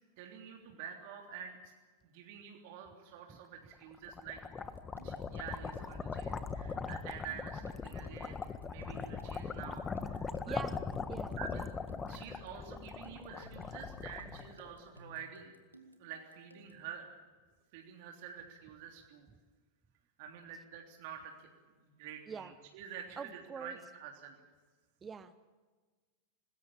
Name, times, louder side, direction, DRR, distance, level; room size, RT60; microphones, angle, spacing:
voice 1, 0.2-1.7 2.1-4.4 5.0-10.5 11.4-11.7 12.1-15.5 16.0-17.1 17.7-19.3 20.2-21.5 21.8-24.4, right 8 dB, 50° right, 2 dB, 3.3 m, -48 dB
sound 1, 3.8-15.0, left 5 dB, 20° left, 1.4 m, -40 dB
sound 2, 4.6-16.9, left 1 dB, 85° right, 2.3 m, -58 dB
voice 2, 23.2-23.8 25.0-25.5, right 6 dB, 20° right, 13 dB, 1.0 m, -44 dB
26.0 x 20.5 x 7.2 m, 1.4 s
figure-of-eight pair, 90°, 0 cm